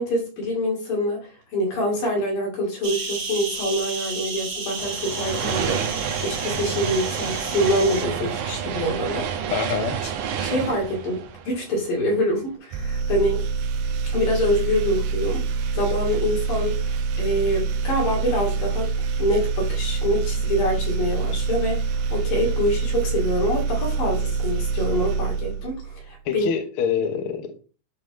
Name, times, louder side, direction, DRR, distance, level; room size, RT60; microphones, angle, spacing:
voice 1, 0.0-5.8 6.2-9.3 10.4-13.4 14.1-15.4 15.7-18.9 19.2-26.5, equal, 90° left, -2 dB, 4.2 m, -25 dB
sound 1, 2.8-8.0, right 4 dB, 40° right, 1.8 m, -32 dB
sound 2, 4.8-12.2, right 7 dB, 75° right, 2.3 m, -29 dB
voice 2, 9.5-10.0 26.2-27.6, left 7 dB, 60° left, 5 dB, 1.4 m, -25 dB
sound 3, 12.7-26.1, right 5 dB, 90° right, 2.3 m, -26 dB
11.0 x 3.7 x 3.3 m, 0.35 s
omnidirectional pair, 3.8 m